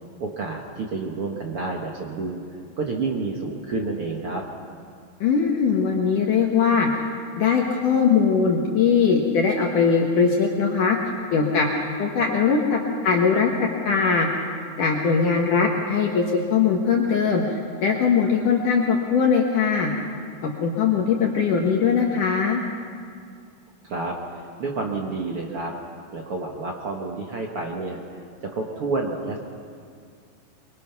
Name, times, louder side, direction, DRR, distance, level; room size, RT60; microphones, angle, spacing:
voice 1, 0.2-4.4 23.8-25.7 26.1-29.4, right 3 dB, 70° right, 0 dB, 1.3 m, -29 dB
voice 2, 5.2-6.9 7.4-11.0 11.3-11.7 12.0-14.3 14.8-16.3 16.5-19.9 20.4-22.6, left 6 dB, 60° left, 0 dB, 2.4 m, -21 dB
24.0 x 23.5 x 5.9 m, 2.2 s
omnidirectional pair, 5.0 m